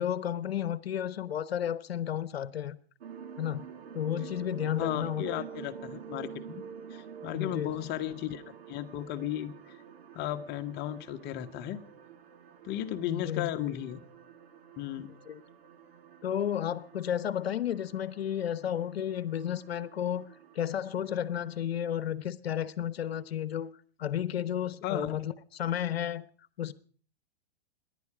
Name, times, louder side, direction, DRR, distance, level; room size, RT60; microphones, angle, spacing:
voice 1, 0.0-2.8 3.4-3.6 3.9-5.2 7.3-7.7 13.1-13.5 15.3-15.4 16.2-20.3 20.5-23.7 24.0-26.3 26.6-26.7, left 10 dB, 75° left, 1.0 m, -32 dB
sound 1, 3.0-21.6, right 7 dB, 70° right, 2.4 m, -48 dB
voice 2, 4.8-6.6 6.9-8.4 8.7-9.5 10.1-11.8 12.6-14.0 14.8-15.1 24.8-25.2, left 12 dB, 35° left, 1.4 m, -35 dB
26.5 x 11.0 x 4.9 m
hypercardioid pair, 115°, 31 cm